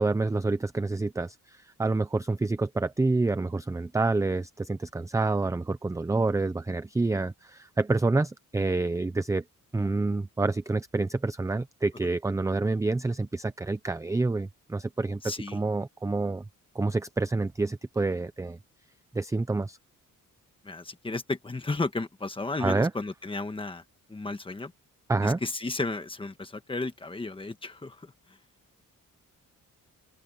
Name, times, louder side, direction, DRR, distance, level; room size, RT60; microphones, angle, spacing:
voice 1, 0.0-9.4 9.7-15.2 15.5-16.4 16.7-18.6 19.1-19.8 22.6-22.9 25.1-25.4, right 3 dB, 10° right, 0.5 m, -28 dB
voice 2, 15.2-15.6 20.6-23.8 24.1-24.7 25.2-28.4, left 3 dB, 15° left, 1.4 m, -33 dB
wide cardioid pair, 170°, 33 cm